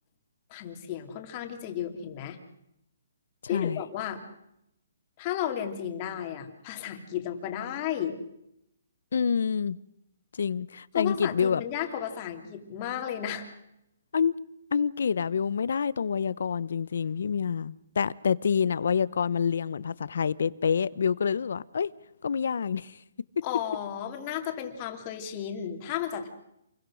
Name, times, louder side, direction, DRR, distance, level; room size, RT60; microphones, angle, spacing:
voice 1, 0.5-2.4 3.5-4.2 5.2-8.2 10.9-13.5 23.4-26.3, left 10 dB, 25° left, 3.0 m, -33 dB
voice 2, 3.5-3.8 9.1-9.8 10.4-11.6 14.1-14.3 14.7-21.9 22.2-23.0, left 6 dB, 65° left, 0.9 m, -27 dB
28.0 x 22.0 x 6.4 m
hypercardioid pair, 170°, 0 cm